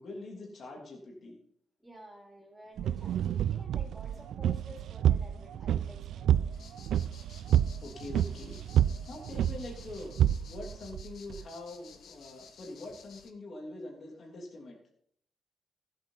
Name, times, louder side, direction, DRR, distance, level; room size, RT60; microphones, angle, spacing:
voice 1, 0.0-1.4 3.2-3.3 7.8-8.6 9.1-10.1 10.5-14.8, left 2 dB, 55° left, 0 dB, 2.8 m, -44 dB
voice 2, 1.8-6.7, equal, 5° right, -2 dB, 3.6 m, -52 dB
sound 1, 2.8-11.4, right 10 dB, 90° right, 0.4 m, -29 dB
sound 2, 6.5-13.3, left 6 dB, 80° left, 1.2 m, -55 dB
15.5 x 8.0 x 4.0 m, 0.66 s
cardioid pair, 115°, 0 cm